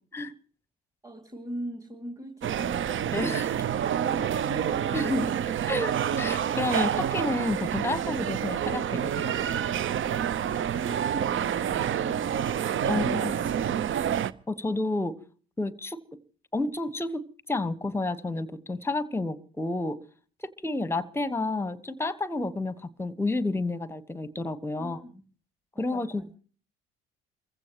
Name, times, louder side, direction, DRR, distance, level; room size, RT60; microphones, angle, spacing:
voice 1, 1.0-3.6 4.0-5.0 10.4-12.5 12.8-13.5 24.8-25.2 25.7-26.3, equal, 10° right, 4 dB, 2.5 m, -41 dB
sound 1, 2.4-14.3, right 9 dB, 40° right, 0.8 m, -28 dB
voice 2, 3.1-3.5 4.9-5.3 5.6-9.3 12.9-13.3 14.5-15.1 15.6-16.0 16.5-20.0 20.6-25.0 25.8-26.3, left 2 dB, 10° left, 15 dB, 1.3 m, -30 dB
29.5 x 15.5 x 3.0 m, 0.42 s
hypercardioid pair, 55°, 30 cm